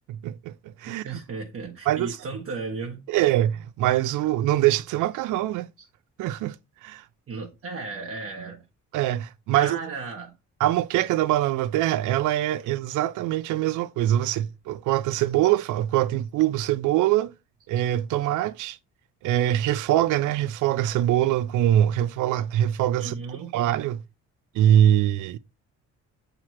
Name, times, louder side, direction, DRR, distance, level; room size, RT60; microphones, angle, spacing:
voice 1, 0.1-1.2 1.9-2.2 3.1-5.7 6.2-6.6 6.8-7.0 8.9-9.8 10.6-17.3 17.7-18.8 19.2-23.2 23.5-24.0 24.5-25.4, right 12 dB, 85° right, 0.5 m, -23 dB
voice 2, 0.9-3.3 7.3-8.6 9.5-10.3 23.0-23.5, right 4 dB, 50° right, 1.0 m, -35 dB
5.8 x 3.0 x 3.0 m
cardioid pair, 90°, 30 cm